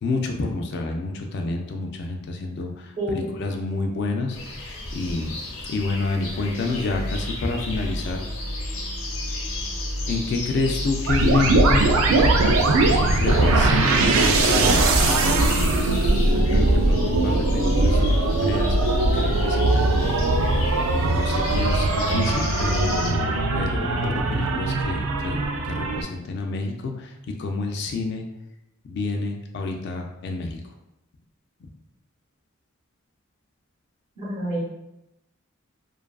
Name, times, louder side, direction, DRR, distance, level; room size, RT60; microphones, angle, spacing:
voice 1, 0.0-5.4 5.7-8.2 10.1-11.9 13.1-15.9 16.3-18.8 19.1-20.5 21.0-28.3 28.9-30.6, left 3 dB, 55° left, 3 dB, 0.3 m, -29 dB
voice 2, 3.0-3.3 34.2-34.6, right 1 dB, 30° right, -9 dB, 0.8 m, -28 dB
sound 1, 4.3-23.1, left 2 dB, 90° left, 0.6 m, -34 dB
sound 2, 6.9-15.0, equal, 5° right, 0.5 m, -32 dB
sound 3, 11.1-26.0, right 2 dB, 75° right, 0.3 m, -20 dB
2.6 x 2.3 x 2.2 m, 0.89 s
head